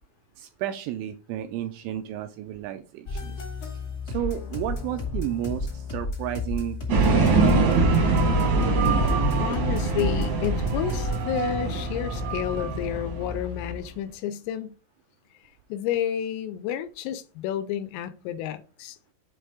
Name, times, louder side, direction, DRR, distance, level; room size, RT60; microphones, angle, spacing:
voice 1, 0.4-3.4 4.1-8.0, right 12 dB, 85° right, 2.7 m, -32 dB
sound 1, 3.1-13.8, left 2 dB, 55° left, 1.0 m, -33 dB
sound 2, 6.9-13.7, right 3 dB, 70° right, 1.7 m, -23 dB
voice 2, 9.4-14.8 15.7-19.1, left 10 dB, 85° left, 3.1 m, -31 dB
7.9 x 3.3 x 4.8 m
omnidirectional pair, 5.9 m